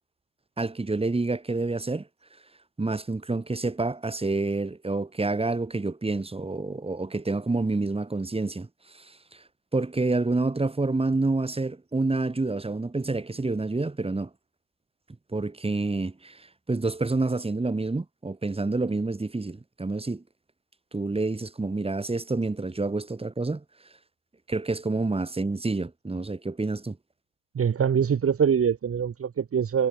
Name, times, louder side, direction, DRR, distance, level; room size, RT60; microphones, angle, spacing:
voice 1, 0.6-2.1 2.8-8.7 8.9-9.2 9.7-14.3 15.3-20.2 20.9-23.6 24.5-27.0, right 3 dB, 10° right, 7.3 m, -28 dB
voice 2, 27.5-29.9, right 7 dB, 25° right, 4.1 m, -24 dB
hypercardioid pair, 80°, 48 cm